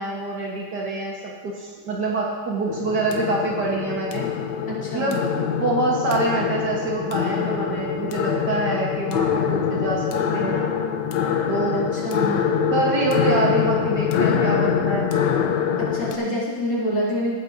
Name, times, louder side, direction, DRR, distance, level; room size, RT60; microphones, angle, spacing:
voice 1, 0.0-4.3 4.9-10.7 11.5-11.9 12.7-15.1, right 2 dB, 60° right, -3 dB, 1.9 m, -26 dB
sound 1, 2.7-16.2, left 7 dB, 70° left, 1.4 m, -24 dB
voice 2, 4.7-5.2 11.9-12.4 15.8-17.3, equal, 40° left, -8 dB, 3.5 m, -26 dB
17.5 x 9.0 x 2.7 m, 1.5 s
omnidirectional pair, 2.1 m